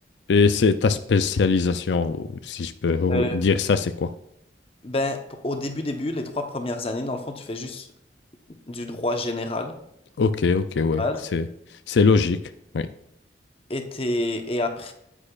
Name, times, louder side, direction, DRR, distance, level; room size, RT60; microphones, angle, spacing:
voice 1, 0.3-4.1 10.2-11.0 11.3-11.5 11.9-12.4 12.7-12.9, left 4 dB, 85° left, 11 dB, 0.4 m, -21 dB
voice 2, 4.8-7.9 8.7-9.7 11.0-11.2 13.7-14.9, left 1 dB, 30° left, 5 dB, 1.0 m, -28 dB
9.9 x 8.5 x 2.4 m, 0.81 s
head